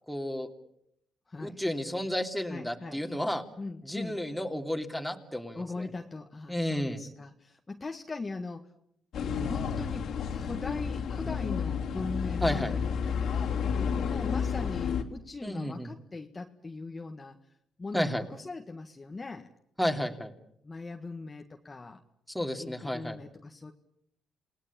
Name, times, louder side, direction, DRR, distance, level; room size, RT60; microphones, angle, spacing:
voice 1, 0.1-0.5 1.4-3.4 3.8-5.9 6.5-7.0 12.4-12.7 15.4-15.9 17.9-18.3 19.8-20.3 22.3-23.2, left 1 dB, ahead, 4 dB, 3.0 m, -32 dB
voice 2, 1.3-1.6 2.5-3.0 3.6-4.2 5.6-8.7 9.4-13.3 13.6-17.4 17.8-19.5 20.6-22.0 22.6-23.7, left 3 dB, 25° left, 4 dB, 1.7 m, -40 dB
sound 1, 9.1-15.0, left 6 dB, 70° left, 2.9 m, -31 dB
29.0 x 19.0 x 8.8 m, 0.75 s
cardioid pair, 90°, 0 cm